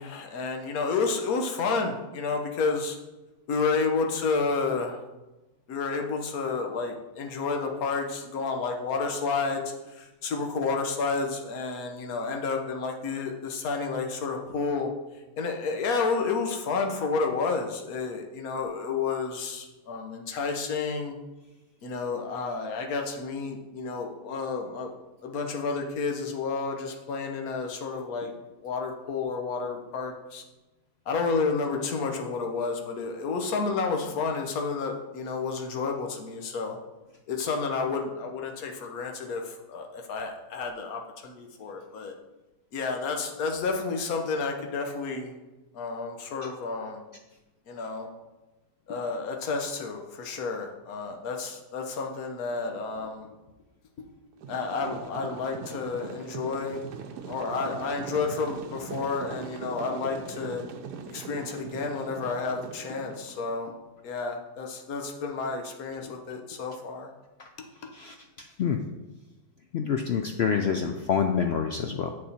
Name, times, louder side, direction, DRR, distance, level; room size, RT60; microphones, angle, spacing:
voice 1, 0.0-3.0 3.5-5.0 5.7-14.9 15.4-21.2 21.8-24.9 25.2-28.3 28.6-30.4 31.1-36.8 37.3-42.1 42.7-45.3 45.7-47.0 47.7-48.1 48.9-53.3 54.5-56.8 57.3-60.6 61.1-63.7 64.0-67.1, left 4 dB, 65° left, 3 dB, 1.4 m, -30 dB
sound 1, 54.4-63.5, right 6 dB, 85° right, 1.3 m, -40 dB
voice 2, 67.9-68.8 69.7-72.1, left 7 dB, 85° left, 5 dB, 0.5 m, -27 dB
7.5 x 6.6 x 4.2 m, 1.1 s
omnidirectional pair, 1.7 m